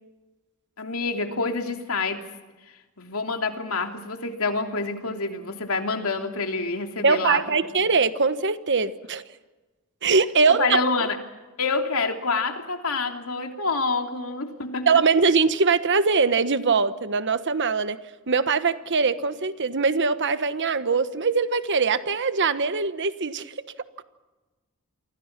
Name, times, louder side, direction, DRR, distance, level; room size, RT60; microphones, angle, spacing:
voice 1, 0.8-2.2 3.0-7.6 10.5-11.2 11.6-14.9, left 3 dB, 75° left, 4 dB, 3.0 m, -27 dB
voice 2, 7.0-9.2 10.0-10.8 14.9-18.0 18.3-23.5, right 4 dB, 55° right, 12 dB, 1.3 m, -22 dB
29.0 x 24.5 x 6.0 m, 1.2 s
head